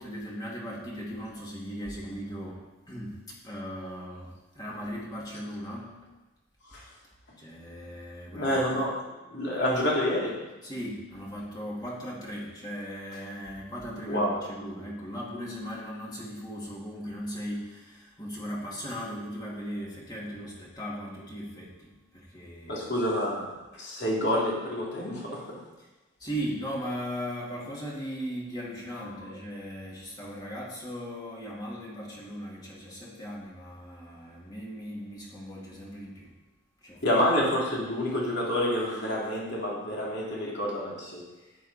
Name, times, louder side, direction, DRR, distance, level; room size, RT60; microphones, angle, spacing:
voice 1, 0.0-6.0 7.4-8.8 10.6-22.8 25.8-25.9 26.2-36.4 36.8-37.2 41.4-41.6, equal, 20° left, -4 dB, 2.3 m, -38 dB
voice 2, 8.3-9.0 9.3-10.4 14.1-14.4 22.7-25.6 37.0-41.2, left 1 dB, 50° left, -4 dB, 3.1 m, -28 dB
13.5 x 9.8 x 4.2 m, 1.1 s
head